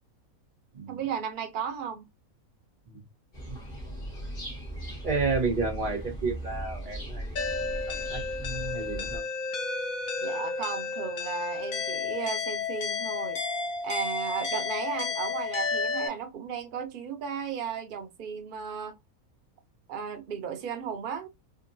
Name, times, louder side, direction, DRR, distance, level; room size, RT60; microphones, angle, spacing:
voice 1, 0.9-2.1 10.2-13.4 13.8-19.0 19.9-21.3, right 7 dB, 85° right, 0.4 m, -35 dB
sound 1, 3.3-9.2, right 1 dB, 40° left, 1.2 m, -38 dB
voice 2, 5.0-7.3 8.1-9.2, right 4 dB, 35° right, 1.1 m, -31 dB
sound 2, 7.4-16.1, left 4 dB, 70° left, 1.2 m, -32 dB
3.6 x 2.2 x 2.5 m
omnidirectional pair, 1.6 m